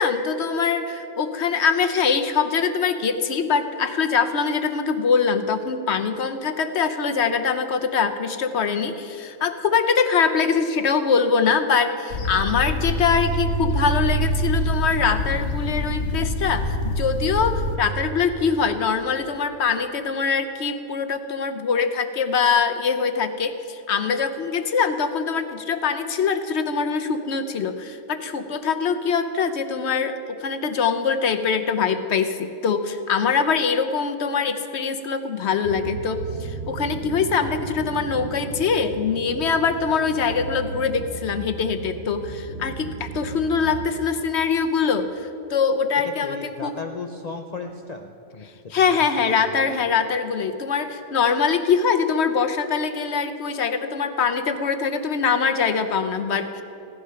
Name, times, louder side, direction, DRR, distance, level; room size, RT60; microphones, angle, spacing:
voice 1, 0.0-46.8 48.7-56.6, left 6 dB, 60° left, 8 dB, 0.9 m, -23 dB
sound 1, 12.1-17.8, equal, 75° left, 1.4 m, -25 dB
sound 2, 35.6-43.9, right 5 dB, 70° right, 1.0 m, -35 dB
voice 2, 46.2-48.5 48.9-49.0, left 4 dB, 45° left, 4 dB, 0.6 m, -35 dB
16.0 x 11.5 x 5.7 m, 2.7 s
omnidirectional pair, 1.4 m